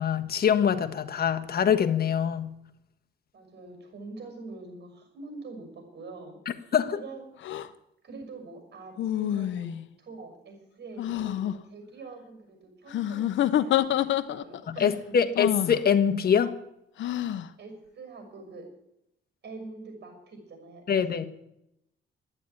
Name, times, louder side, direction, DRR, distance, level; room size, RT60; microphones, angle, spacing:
voice 1, 0.0-2.5 6.7-7.0 14.7-16.5 20.9-21.2, left 8 dB, 50° left, 7 dB, 1.4 m, -24 dB
voice 2, 3.3-7.3 8.0-9.7 10.0-15.2 17.6-18.7 19.4-21.0, right 3 dB, 55° right, 4 dB, 6.2 m, -44 dB
sound 1, 7.4-7.7 9.0-9.9 11.0-11.5 12.9-14.6 15.3-15.8 17.0-17.5, left 11 dB, 70° left, 0.8 m, -27 dB
11.5 x 10.0 x 9.5 m, 0.81 s
cardioid pair, 90°, 20 cm